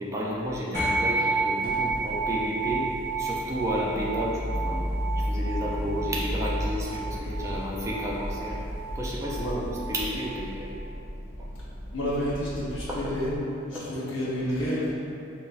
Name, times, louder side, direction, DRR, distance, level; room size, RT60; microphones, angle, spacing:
voice 1, 0.0-2.9 3.2-4.9 5.2-8.6 8.9-10.8 12.9-13.2 13.7-13.9, equal, 15° right, -5 dB, 0.3 m, -32 dB
sound 1, 0.7-10.4, right 3 dB, 15° left, 0.7 m, -31 dB
sound 2, 1.6-13.4, equal, 45° left, 0.8 m, -34 dB
voice 2, 11.9-13.4 13.7-14.9, equal, 80° left, -7 dB, 0.9 m, -29 dB
5.4 x 2.0 x 2.3 m, 2.6 s
head